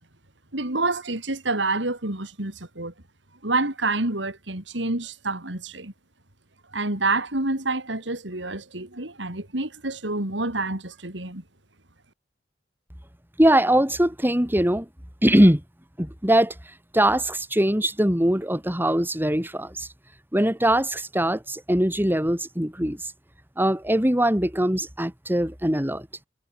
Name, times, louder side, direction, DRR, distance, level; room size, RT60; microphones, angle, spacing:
voice 1, 0.5-2.9 3.4-5.9 6.7-11.4, right 2 dB, 70° right, 3.9 m, -28 dB
voice 2, 13.4-14.9 15.2-15.6 16.0-16.5 16.9-19.9 20.3-23.0 23.6-26.1, right 1 dB, 10° right, 4.2 m, -21 dB
head